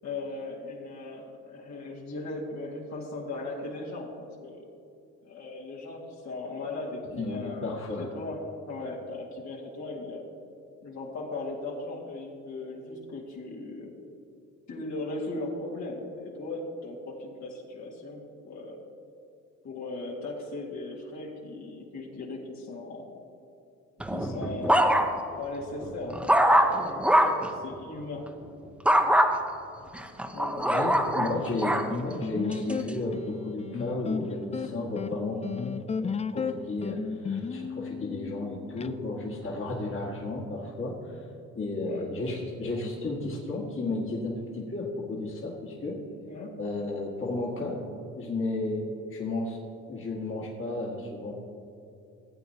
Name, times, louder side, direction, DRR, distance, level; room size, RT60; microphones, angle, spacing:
voice 1, 0.0-4.7 5.2-10.3 10.8-14.0 14.7-18.8 19.6-23.1 24.1-28.3 30.3-30.7 41.8-42.1 46.3-46.6, left 2 dB, 65° left, -4 dB, 2.1 m, -38 dB
voice 2, 7.2-8.1 30.6-35.4 36.0-41.1 41.5-46.0 46.6-47.8 48.2-49.6 49.9-51.3, left 2 dB, 45° left, -4 dB, 1.8 m, -33 dB
sound 1, 24.0-25.4 25.8-27.5 28.9-29.3 29.9-31.9 32.5-32.9, equal, 5° right, 0.7 m, -23 dB
sound 2, 31.9-38.9, left 5 dB, 25° left, 0.3 m, -34 dB
16.0 x 8.4 x 2.9 m, 2.6 s
cardioid pair, 90°, 30 cm